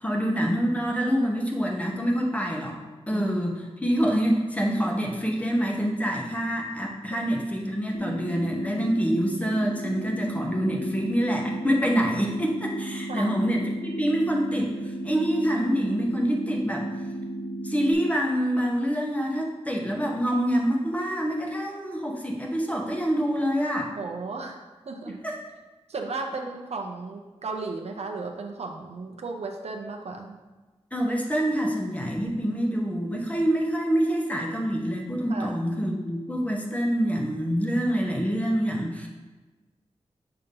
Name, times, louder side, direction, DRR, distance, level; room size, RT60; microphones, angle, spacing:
voice 1, 0.0-2.8 3.1-14.7 15.0-16.9 17.6-23.9 25.1-25.4 30.9-39.1, equal, 10° left, 0 dB, 0.9 m, -26 dB
sound 1, 7.9-17.9, right 1 dB, 60° left, 0.8 m, -34 dB
voice 2, 23.9-25.2 25.9-30.4 32.7-32.8 35.3-35.5, right 3 dB, 70° right, 3 dB, 0.6 m, -35 dB
6.6 x 2.9 x 5.2 m, 1.2 s
wide cardioid pair, 115°, 11 cm